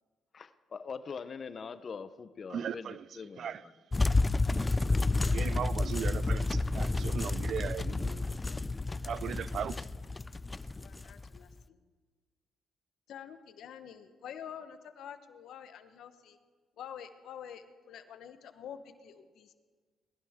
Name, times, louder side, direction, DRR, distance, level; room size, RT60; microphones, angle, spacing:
voice 1, 0.3-3.7, left 5 dB, 45° left, 0.8 m, -43 dB
voice 2, 2.5-3.0 3.4-3.6 5.3-8.2 9.0-9.8, right 8 dB, 60° right, 0.4 m, -37 dB
sound 1, 3.9-11.5, left 3 dB, 20° left, 0.4 m, -30 dB
voice 3, 10.8-11.8 13.1-16.4 16.8-19.5, left 8 dB, 75° left, 1.1 m, -47 dB
21.0 x 15.5 x 3.7 m
cardioid pair, 90°, 0 cm